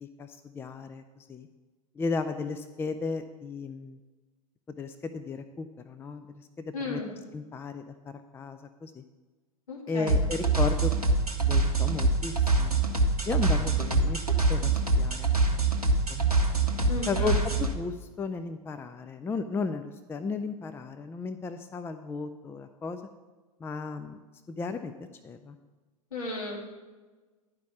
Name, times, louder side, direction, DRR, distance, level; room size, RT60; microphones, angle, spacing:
voice 1, 0.0-1.5 2.0-4.0 4.8-7.0 7.3-7.9 8.3-9.0 9.9-10.9 11.4-12.8 13.3-15.6 16.1-16.3 17.1-23.0 23.6-24.2 24.5-24.9 25.2-25.6, left 4 dB, 10° left, 9 dB, 0.5 m, -35 dB
voice 2, 6.7-7.1 9.7-10.1 16.9-17.4 26.1-26.7, left 2 dB, 70° left, -2 dB, 2.7 m, -34 dB
sound 1, 10.1-17.7, right 3 dB, 90° right, 1.1 m, -24 dB
11.5 x 5.1 x 7.0 m, 1.3 s
figure-of-eight pair, 85°, 19 cm